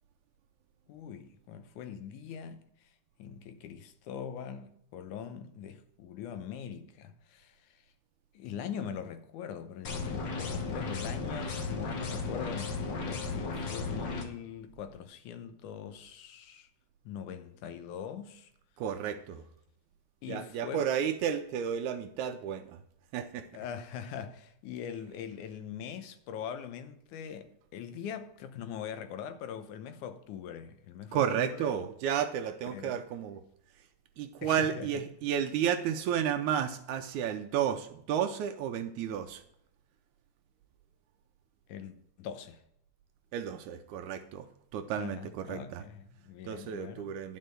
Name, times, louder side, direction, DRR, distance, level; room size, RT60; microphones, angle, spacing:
voice 1, 0.9-2.6 3.2-7.8 8.3-16.7 17.1-18.5 20.2-20.9 23.5-31.7 32.7-33.0 34.4-34.9 41.7-42.6 45.0-47.1, left 8 dB, 80° left, 2.3 m, -42 dB
sound 1, 9.8-14.2, left 4 dB, 55° left, 1.3 m, -35 dB
voice 2, 18.8-19.4 20.3-22.8 23.1-23.5 31.1-33.4 34.2-39.4 43.3-44.5 44.7-45.9 46.4-47.4, right 9 dB, 80° right, 2.0 m, -32 dB
10.5 x 5.6 x 7.7 m
omnidirectional pair, 3.5 m